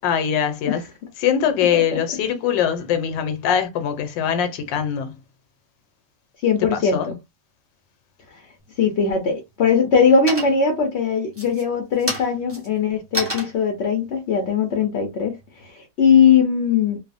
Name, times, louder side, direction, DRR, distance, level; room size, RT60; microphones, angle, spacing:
voice 1, 0.0-0.8 1.2-5.2 6.6-7.1, left 8 dB, 90° left, 1.3 m, -22 dB
voice 2, 6.4-7.2 8.3-8.4 8.8-17.0, left 6 dB, 70° left, 0.6 m, -20 dB
sound 1, 8.6-9.2 9.6-10.0 10.3-10.8 11.3-15.7, equal, 15° right, 0.4 m, -31 dB
3.1 x 2.0 x 2.4 m
omnidirectional pair, 2.0 m